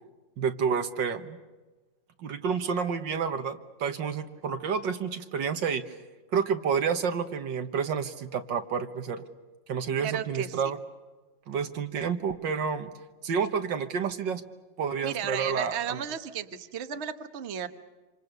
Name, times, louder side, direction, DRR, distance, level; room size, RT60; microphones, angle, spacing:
voice 1, 0.4-1.4 2.2-5.9 6.3-9.3 9.7-10.8 11.5-12.9 13.2-14.4 14.8-16.0, right 6 dB, 70° right, 8 dB, 1.9 m, -29 dB
voice 2, 10.0-10.6 15.0-17.7, right 8 dB, 40° right, 8 dB, 1.2 m, -34 dB
27.0 x 26.5 x 6.7 m, 1.3 s
omnidirectional pair, 2.1 m